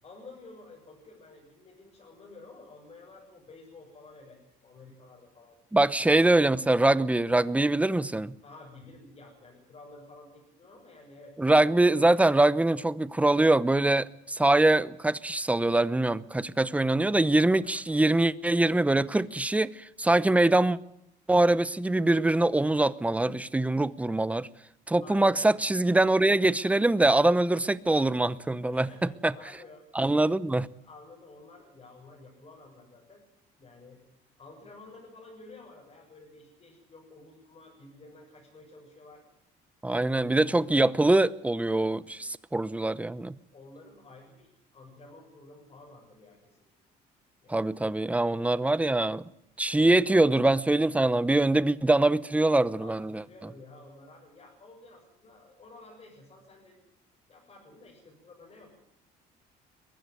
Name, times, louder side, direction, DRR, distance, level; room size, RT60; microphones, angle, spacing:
voice 1, 0.0-5.5 5.9-6.1 8.4-11.7 17.6-17.8 25.0-25.4 28.7-29.8 30.8-33.2 33.6-34.0 34.4-39.2 43.5-46.6 47.4-47.7 52.8-56.8 57.3-58.7, left 2 dB, 35° left, 7.4 m, -51 dB
voice 2, 5.7-8.3 11.4-20.8 21.3-24.5 24.9-29.3 29.9-30.7 39.8-43.4 47.5-49.2 49.6-53.2, right 2 dB, 10° right, 0.8 m, -23 dB
22.0 x 15.0 x 9.3 m
cardioid pair, 110°, 17 cm